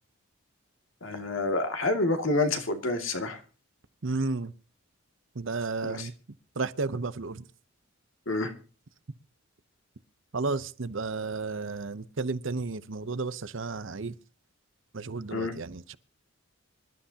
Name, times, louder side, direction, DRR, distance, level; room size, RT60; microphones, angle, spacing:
voice 1, 1.0-3.4 5.8-6.1 8.3-8.5 15.3-15.5, left 2 dB, 65° left, 2.3 m, -28 dB
voice 2, 4.0-4.5 5.3-6.1 6.6-7.4 10.3-14.1 14.9-16.0, right 3 dB, 60° right, 0.8 m, -32 dB
25.5 x 12.5 x 2.8 m
head